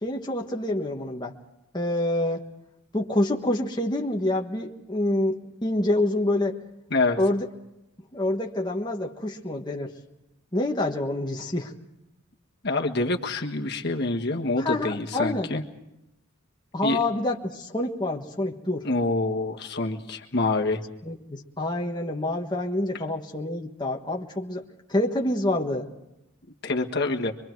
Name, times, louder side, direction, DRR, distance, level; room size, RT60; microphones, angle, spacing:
voice 1, 0.0-1.3 1.7-2.5 2.9-6.6 7.2-7.5 8.1-9.9 10.5-11.7 14.6-15.5 16.7-18.9 21.0-24.6 24.9-25.9, left 1 dB, 20° left, 0 dB, 1.4 m, -27 dB
voice 2, 12.6-15.6 16.8-17.0 18.8-20.8 26.6-27.3, left 2 dB, 50° left, 2 dB, 1.6 m, -26 dB
25.0 x 24.0 x 4.7 m, 0.91 s
head